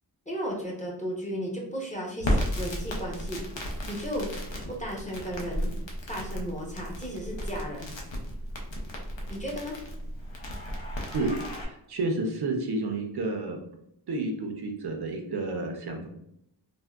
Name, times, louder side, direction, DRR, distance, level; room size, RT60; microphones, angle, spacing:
voice 1, 0.3-3.4 3.9-4.3 4.7-5.7 6.1-7.9 9.3-9.8, equal, 15° left, -3 dB, 0.7 m, -34 dB
Crackle, 2.2-11.6, equal, 80° left, 0.7 m, -34 dB
voice 2, 11.6-13.6 14.1-16.1, right 2 dB, 60° right, 3 dB, 0.5 m, -30 dB
3.4 x 2.1 x 2.2 m, 0.77 s
wide cardioid pair, 115°, 44 cm